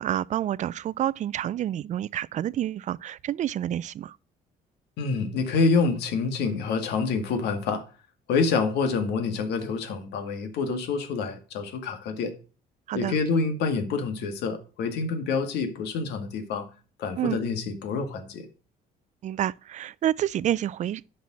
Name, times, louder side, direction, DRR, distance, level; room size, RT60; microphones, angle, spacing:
voice 1, 0.0-4.2 12.9-13.2 17.2-17.4 19.2-21.1, right 11 dB, 45° right, 0.4 m, -28 dB
voice 2, 5.0-7.8 8.3-12.3 12.9-16.7 17.0-18.5, left 4 dB, 80° left, 2.0 m, -27 dB
10.5 x 5.5 x 6.1 m
cardioid pair, 110°, 17 cm